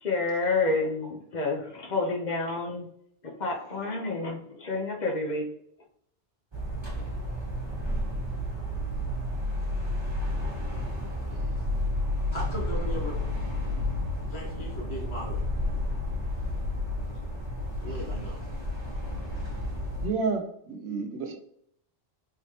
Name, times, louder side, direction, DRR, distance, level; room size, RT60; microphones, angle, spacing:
voice 1, 0.0-2.9 3.2-5.5, left 3 dB, 50° left, 1 dB, 0.7 m, -29 dB
sound 1, 6.5-20.1, left 1 dB, 25° right, 1.0 m, -31 dB
voice 2, 12.3-13.2 14.3-15.4 17.8-18.4, equal, 75° left, -2 dB, 1.5 m, -37 dB
voice 3, 20.0-21.3, right 4 dB, 85° right, 4 dB, 0.9 m, -30 dB
3.7 x 3.1 x 2.7 m, 0.70 s
omnidirectional pair, 1.1 m